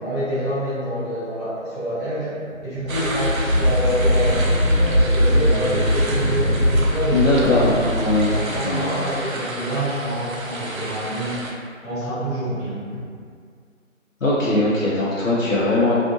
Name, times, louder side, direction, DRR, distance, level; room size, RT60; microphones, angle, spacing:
voice 1, 0.0-2.3 2.6-7.8 8.3-11.4 11.8-12.8, equal, 30° left, -15 dB, 1.2 m, -26 dB
sound 1, 2.8-9.2, equal, 50° right, 0.8 m, -21 dB
sound 2, 2.9-11.5, right 1 dB, 90° right, 0.6 m, -32 dB
voice 2, 7.1-8.3 8.6-8.9 14.2-15.9, left 2 dB, 75° left, -7 dB, 0.7 m, -20 dB
2.6 x 2.4 x 2.4 m, 2.1 s
figure-of-eight pair, 175°, 40 cm